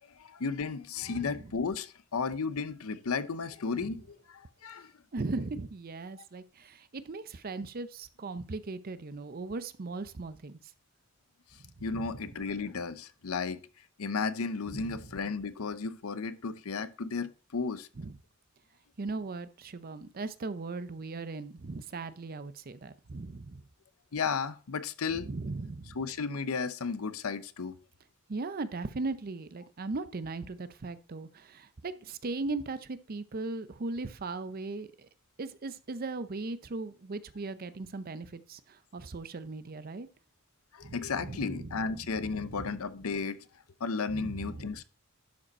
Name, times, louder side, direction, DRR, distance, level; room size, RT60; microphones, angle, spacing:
voice 1, 0.2-4.9 11.8-13.6 14.0-17.9 24.1-25.3 25.9-27.8 40.7-43.4 43.8-44.8, left 5 dB, 85° left, 0.7 m, -34 dB
voice 2, 1.1-1.5 5.1-10.6 11.8-12.0 14.7-14.8 18.0-18.1 19.0-23.6 25.1-25.9 28.3-35.1 35.4-40.1 40.8-41.7 42.2-42.7 44.1-44.5, right 3 dB, 45° right, 0.6 m, -38 dB
11.5 x 5.1 x 4.2 m
head